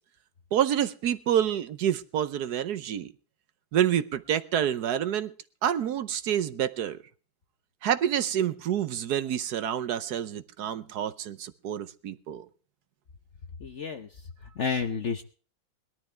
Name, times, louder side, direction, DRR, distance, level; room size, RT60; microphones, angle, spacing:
voice 1, 0.5-3.1 3.7-5.3 5.6-7.0 7.8-12.5, right 10 dB, 60° right, 13 dB, 1.2 m, -28 dB
voice 2, 13.6-14.1 14.6-15.2, left 6 dB, 50° left, 7 dB, 0.9 m, -30 dB
21.5 x 12.5 x 3.4 m, 0.39 s
omnidirectional pair, 2.2 m